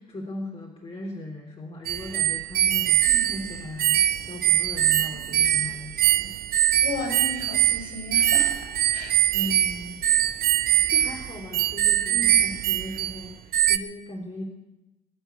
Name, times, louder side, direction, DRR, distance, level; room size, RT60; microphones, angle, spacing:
voice 1, 0.0-6.4 9.3-10.0 10.9-14.4, left 1 dB, 30° left, -1 dB, 3.2 m, -38 dB
sound 1, 1.9-13.2 13.5-13.8, right 11 dB, 45° right, 1.0 m, -23 dB
voice 2, 3.0-3.4 5.3-5.4 6.8-8.6 8.9-9.5 12.1-12.4, left 2 dB, 50° left, 2 dB, 6.4 m, -35 dB
21.0 x 8.0 x 8.2 m, 1.0 s
hypercardioid pair, 60°, 20 cm